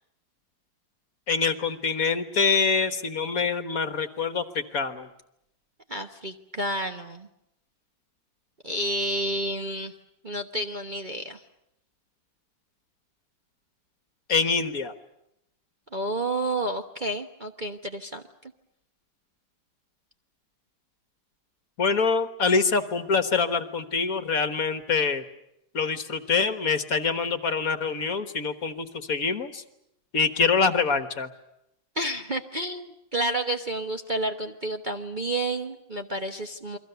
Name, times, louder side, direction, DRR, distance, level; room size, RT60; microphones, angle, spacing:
voice 1, 1.3-4.4 4.7-5.1 14.3-14.9 21.8-25.2 25.7-29.6 30.1-31.3, left 5 dB, 50° left, 10 dB, 1.6 m, -25 dB
voice 2, 5.9-7.3 8.6-9.9 10.2-11.4 15.9-18.2 32.0-36.8, right 1 dB, 30° right, 3 dB, 1.0 m, -30 dB
29.5 x 23.0 x 6.9 m, 0.82 s
omnidirectional pair, 2.0 m